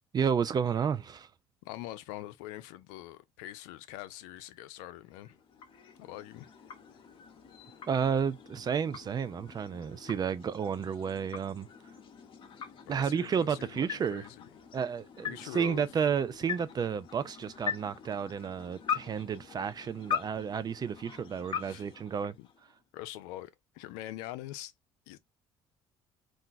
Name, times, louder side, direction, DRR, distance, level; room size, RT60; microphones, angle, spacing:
voice 1, 0.1-1.3 7.9-11.7 12.9-14.2 14.7-22.3, right 7 dB, 35° right, 0.4 m, -31 dB
voice 2, 1.6-5.4 6.0-6.5 12.9-14.5 15.3-15.9 21.6-21.9 22.4-22.5 22.9-24.7 25.1-25.2, left 15 dB, 85° left, 0.4 m, -44 dB
sound 1, 5.0-22.8, left 7 dB, 45° left, 0.7 m, -42 dB
2.5 x 2.2 x 3.8 m
supercardioid pair, 80°, 12 cm